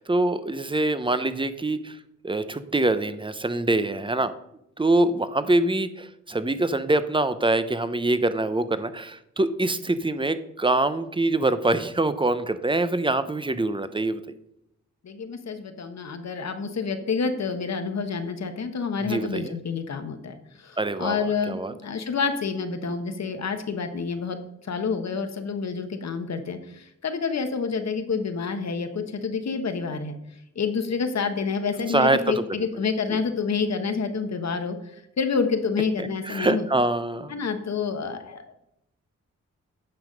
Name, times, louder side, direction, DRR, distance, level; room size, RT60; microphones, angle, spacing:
voice 1, 0.0-2.0 2.2-4.3 4.8-14.2 19.0-19.6 20.8-21.7 31.9-32.7 33.1-33.2 36.0-37.3, right 2 dB, 15° right, 12 dB, 0.7 m, -24 dB
voice 2, 15.0-24.4 24.7-30.2 30.5-34.8 35.2-36.6 37.3-38.5, left 5 dB, 60° left, 8 dB, 1.2 m, -28 dB
9.0 x 5.7 x 5.3 m, 0.80 s
cardioid pair, 65°, 30 cm